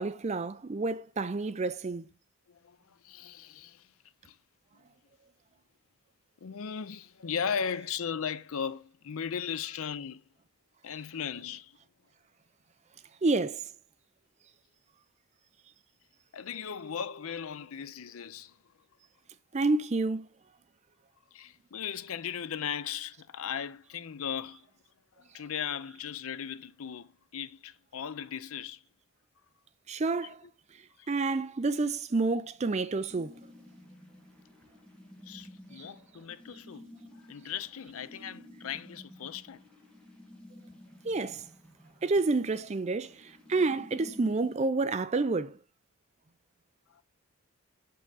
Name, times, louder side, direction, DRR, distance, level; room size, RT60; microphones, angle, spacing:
voice 1, 0.0-2.1 13.2-13.6 19.5-20.3 29.9-30.4 31.1-33.3 35.8-35.9 41.0-41.5 42.0-45.6, right 3 dB, 30° right, 0.4 m, -29 dB
voice 2, 2.5-3.9 4.2-4.3 6.4-10.2 10.8-11.7 16.3-18.6 21.3-24.7 25.3-28.8 31.0-31.1 35.3-39.6, left 7 dB, 70° left, 0.5 m, -37 dB
sound 1, 33.1-44.5, left 1 dB, 5° left, 1.7 m, -52 dB
6.5 x 5.6 x 3.9 m
head